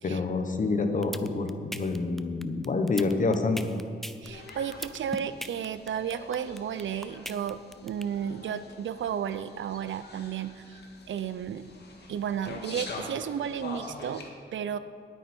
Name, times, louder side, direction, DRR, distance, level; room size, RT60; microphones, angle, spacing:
voice 1, 0.0-3.7, left 3 dB, 40° left, 6 dB, 1.1 m, -27 dB
sound 1, 0.8-8.0, equal, ahead, 0.4 m, -38 dB
sound 2, 4.2-14.3, left 3 dB, 60° left, 1.9 m, -45 dB
voice 2, 4.2-10.8 11.1-11.7 12.1-14.2 14.5-14.8, right 8 dB, 75° right, 13 dB, 0.6 m, -33 dB
19.0 x 9.1 x 4.5 m, 2.3 s
wide cardioid pair, 130°, 20 cm